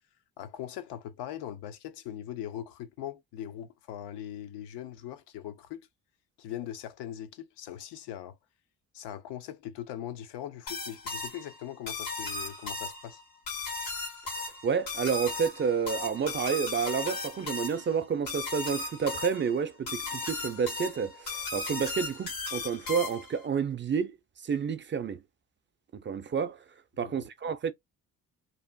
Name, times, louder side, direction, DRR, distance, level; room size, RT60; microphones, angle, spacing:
voice 1, 0.4-5.9 6.4-8.4 8.9-13.2 27.0-27.3, left 11 dB, 70° left, 0.6 m, -40 dB
sound 1, 10.7-23.4, left 3 dB, 90° left, 1.5 m, -36 dB
voice 2, 14.4-24.1 24.4-25.2 25.9-26.6 27.0-27.7, right 6 dB, 25° right, 0.5 m, -30 dB
2.8 x 2.5 x 2.2 m
hypercardioid pair, 50°, 43 cm